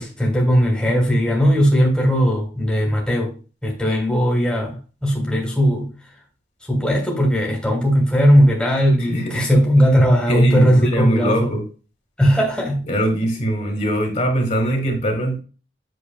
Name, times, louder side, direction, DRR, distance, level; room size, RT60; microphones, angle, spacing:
voice 1, 0.0-3.3 3.6-4.8 5.0-5.9 6.7-11.5 12.2-12.9, equal, 5° left, 1.5 m, -17 dB
voice 2, 9.0-9.5 10.3-11.6 12.9-15.4, right 1 dB, 40° left, 1.6 m, -22 dB
7.9 x 6.3 x 2.3 m
head